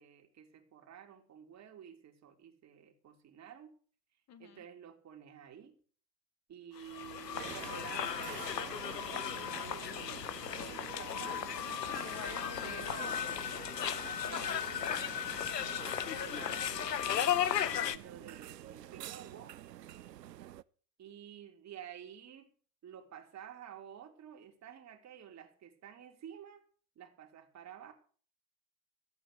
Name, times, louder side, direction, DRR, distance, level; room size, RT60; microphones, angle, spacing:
voice 1, 0.0-3.7 4.4-5.8 6.5-8.2 8.5-10.3 10.6-13.2 13.8-15.1 15.8-19.6 21.0-22.5 22.8-26.6 26.9-27.9, right 9 dB, 35° right, 3 dB, 3.0 m, -51 dB
voice 2, 4.3-4.6 11.9-13.9 15.6-15.9, left 8 dB, 35° left, 10 dB, 2.0 m, -49 dB
sound 1, 6.8-18.0, left 9 dB, 85° left, 0.9 m, -36 dB
sound 2, 7.3-20.6, right 13 dB, 80° right, 0.6 m, -48 dB
14.5 x 8.5 x 6.6 m, 0.43 s
figure-of-eight pair, 75°, 48 cm